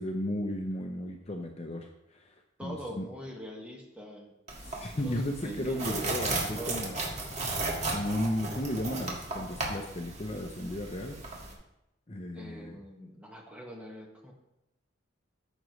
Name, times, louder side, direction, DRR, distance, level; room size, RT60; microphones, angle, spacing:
voice 1, 0.0-2.3 2.6-3.0 4.6-7.0 7.9-11.2 12.1-12.8, left 1 dB, 30° left, 3 dB, 0.6 m, -34 dB
voice 2, 2.6-4.3 4.9-6.9 12.3-14.3, equal, 5° right, -2 dB, 1.6 m, -43 dB
sound 1, 4.5-11.5, right 2 dB, 35° right, 1.8 m, -35 dB
14.0 x 6.3 x 3.2 m, 0.90 s
head